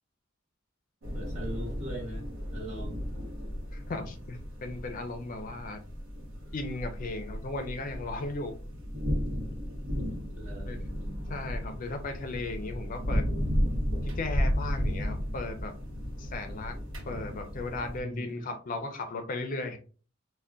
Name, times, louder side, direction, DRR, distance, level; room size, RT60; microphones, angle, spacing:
sound 1, 1.0-18.0, equal, 85° right, 0.9 m, -34 dB
voice 1, 1.1-2.2 2.5-3.1 10.3-10.8 11.7-11.8 18.0-18.3, right 1 dB, 35° right, -1 dB, 1.0 m, -40 dB
voice 2, 3.7-5.8 6.5-8.6 10.6-10.8 11.3-13.3 14.0-15.7 16.2-16.8 17.0-19.8, left 2 dB, 45° left, 6 dB, 0.4 m, -36 dB
3.7 x 2.1 x 2.2 m, 0.38 s
head